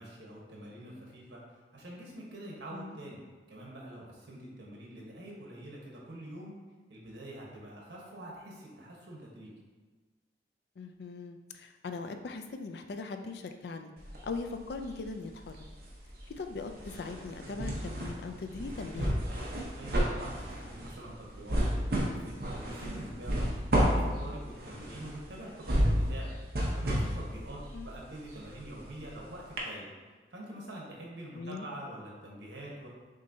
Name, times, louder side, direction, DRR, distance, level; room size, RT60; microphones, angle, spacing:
voice 1, 0.0-1.4 1.7-6.5 6.9-9.5 19.7-26.3 26.7-29.9 30.3-32.9, right 1 dB, 85° right, -3 dB, 1.1 m, -45 dB
voice 2, 10.8-13.9 14.2-15.7 16.4-19.1 27.7-27.9 31.3-31.7, left 4 dB, 70° left, 6 dB, 0.4 m, -40 dB
sound 1, 14.0-15.1 15.4-29.2 29.6-29.7, equal, 55° right, 0.8 m, -32 dB
6.3 x 2.7 x 2.7 m, 1.4 s
head